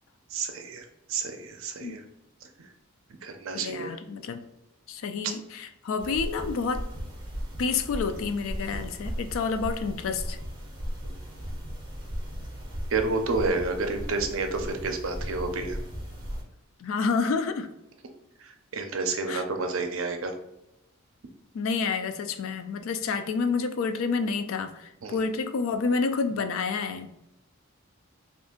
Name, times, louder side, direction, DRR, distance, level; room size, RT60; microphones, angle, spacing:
voice 1, 0.3-2.0 2.6-2.7 3.2-4.0 5.2-5.3 12.9-15.8 18.4-20.3 25.0-25.2, right 3 dB, 65° right, 5 dB, 0.5 m, -30 dB
voice 2, 3.5-4.4 4.9-6.8 7.6-10.4 16.8-17.7 19.3-19.4 21.5-27.1, left 5 dB, 65° left, 9 dB, 0.3 m, -29 dB
sound 1, 6.0-16.4, equal, 20° right, 0.7 m, -36 dB
2.5 x 2.4 x 3.6 m, 0.88 s
head